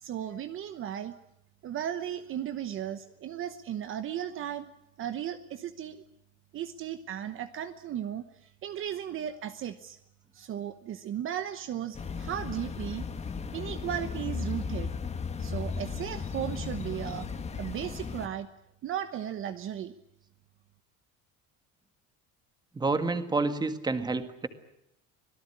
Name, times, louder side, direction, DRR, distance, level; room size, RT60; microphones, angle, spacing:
voice 1, 0.0-1.2 1.6-4.7 5.0-6.0 6.5-10.0 10.3-13.1 13.5-14.9 15.4-18.5 18.8-19.9, right 10 dB, 40° right, 10 dB, 1.1 m, -36 dB
sound 1, 11.9-18.3, left 5 dB, 20° left, 1.5 m, -35 dB
voice 2, 22.7-24.5, right 3 dB, 15° right, 9 dB, 1.8 m, -29 dB
26.0 x 17.5 x 9.8 m, 0.82 s
cardioid pair, 160°, 32 cm